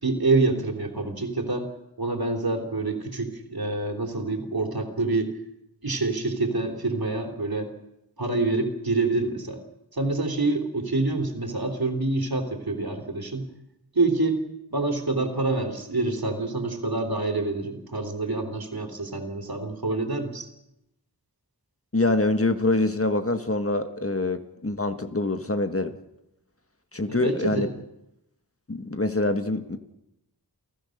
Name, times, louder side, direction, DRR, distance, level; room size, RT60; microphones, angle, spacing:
voice 1, 0.0-1.7 2.0-5.4 5.8-7.7 8.2-9.6 9.9-13.5 13.9-14.4 14.7-20.5 27.1-27.7, right 3 dB, 65° right, 3 dB, 3.5 m, -26 dB
voice 2, 21.9-25.9 26.9-27.7 28.7-29.8, left 2 dB, 35° left, 8 dB, 1.5 m, -25 dB
29.5 x 16.5 x 6.6 m, 0.88 s
wide cardioid pair, 60°, 40 cm